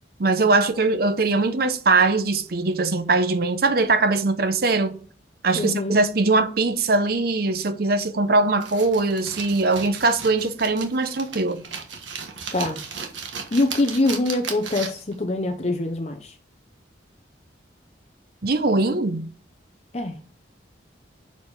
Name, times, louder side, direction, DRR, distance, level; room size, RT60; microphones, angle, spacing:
voice 1, 0.2-5.0 5.4-11.6 18.4-19.3, right 3 dB, 55° right, 0.7 m, -21 dB
voice 2, 5.5-6.0 12.5-12.8 13.5-16.3 19.9-20.2, left 2 dB, 35° left, 0.6 m, -24 dB
sound 1, 8.6-15.1, right 6 dB, 90° right, 1.4 m, -35 dB
6.9 x 4.7 x 5.4 m
head